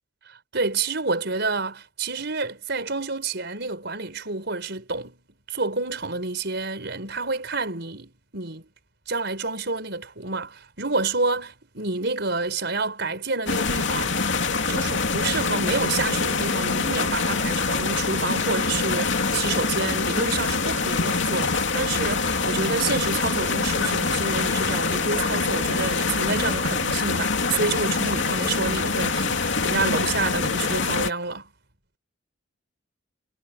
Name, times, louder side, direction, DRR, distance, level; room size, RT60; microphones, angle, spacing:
voice 1, 0.5-5.2 5.5-8.7 9.1-14.4 14.6-31.5, right 3 dB, 55° right, 5.2 m, -29 dB
sound 1, 13.4-31.1, left 4 dB, 65° left, 2.9 m, -25 dB
head